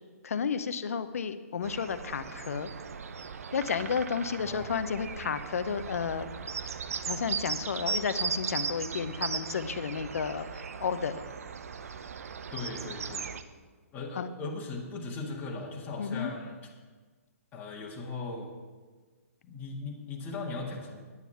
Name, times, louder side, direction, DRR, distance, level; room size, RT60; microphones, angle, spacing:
voice 1, 0.2-2.7 3.5-6.3 7.0-11.2 14.2-14.3 16.0-16.3, left 6 dB, 65° left, 12 dB, 0.7 m, -32 dB
sound 1, 1.6-13.4, right 6 dB, 70° right, 0.7 m, -37 dB
voice 2, 4.4-4.7 12.5-13.3 13.9-16.6 17.5-18.5 19.4-21.0, left 3 dB, 20° left, -2 dB, 1.8 m, -38 dB
9.6 x 9.2 x 5.8 m, 1.4 s
hypercardioid pair, 130°, 8 cm